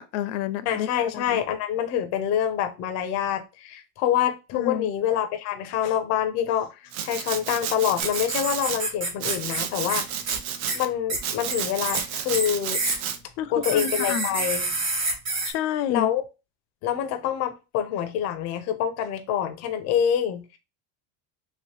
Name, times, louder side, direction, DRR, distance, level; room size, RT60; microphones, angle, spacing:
voice 1, 0.0-0.9 1.1-1.4 4.5-4.9 13.4-14.3 15.4-16.1, left 10 dB, 90° left, 0.6 m, -29 dB
voice 2, 0.7-6.7 7.0-10.2 10.7-12.8 13.5-14.6 15.9-16.2 16.8-20.6, left 9 dB, 35° left, 0.4 m, -26 dB
Domestic sounds home sounds, 6.9-8.8 9.2-10.9 11.2-13.2, right 8 dB, 85° right, 0.7 m, -31 dB
sound 1, 8.0-9.6 9.9-10.0 10.3-10.4 10.7-10.8 11.1-11.2 11.5-12.0 12.3-13.0 13.6-15.5, right 3 dB, 35° right, 1.2 m, -28 dB
3.0 x 2.9 x 3.0 m
cardioid pair, 175°, 47 cm